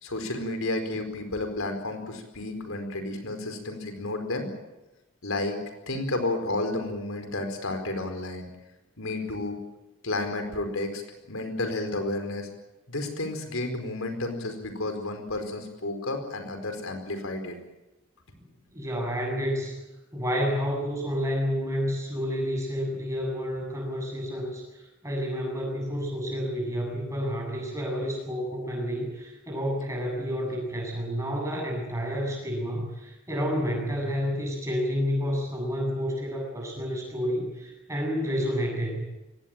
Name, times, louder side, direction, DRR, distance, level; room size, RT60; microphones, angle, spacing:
voice 1, 0.0-4.5 5.2-5.6 5.9-8.5 9.0-9.6 10.0-11.0 11.3-12.5 12.9-17.6, left 2 dB, 80° left, 6 dB, 4.6 m, -31 dB
voice 2, 18.7-19.8 20.1-39.0, equal, 15° right, 0 dB, 7.8 m, -30 dB
23.0 x 18.5 x 8.9 m, 1.0 s
head